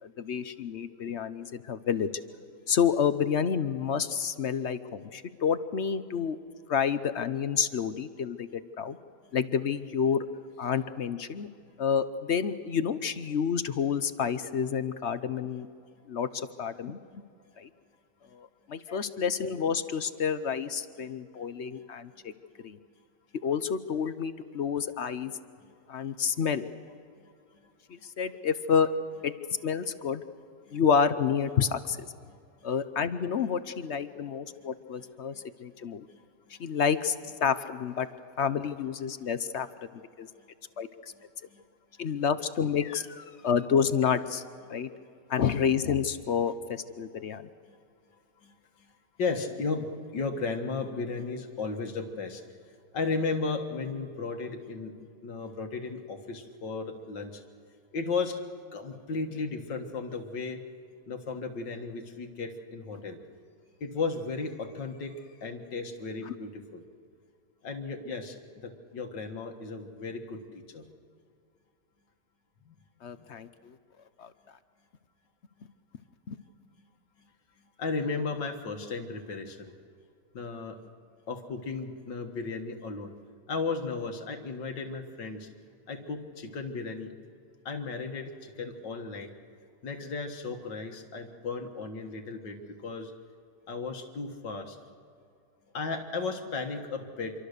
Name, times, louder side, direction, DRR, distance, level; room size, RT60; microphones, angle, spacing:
voice 1, 0.0-2.1 2.7-6.4 6.7-9.0 9.3-11.5 11.8-15.7 16.1-17.2 17.6-17.7 18.3-22.3 22.6-22.8 23.4-25.3 25.9-26.7 27.9-29.3 29.6-30.2 30.7-32.1 32.6-36.1 36.6-38.1 38.4-39.7 40.2-40.3 40.8-41.1 42.0-44.9 45.3-47.4 66.3-66.4 73.0-73.7 74.2-74.3 76.3-76.4, left 7 dB, 55° left, 12 dB, 0.8 m, -29 dB
voice 2, 49.2-52.4 52.9-54.9 55.2-57.4 57.9-58.4 58.7-60.6 61.1-63.2 63.8-66.8 67.6-68.4 68.6-70.4 70.7-70.8 72.6-72.8 73.2-73.3 77.8-79.7 80.3-80.8 81.3-83.1 83.5-85.5 85.9-87.1 87.7-89.3 89.8-93.1 93.7-94.8 95.7-97.3, left 4 dB, 90° left, 4 dB, 2.2 m, -35 dB
26.5 x 24.0 x 6.7 m, 2.4 s
omnidirectional pair, 1.9 m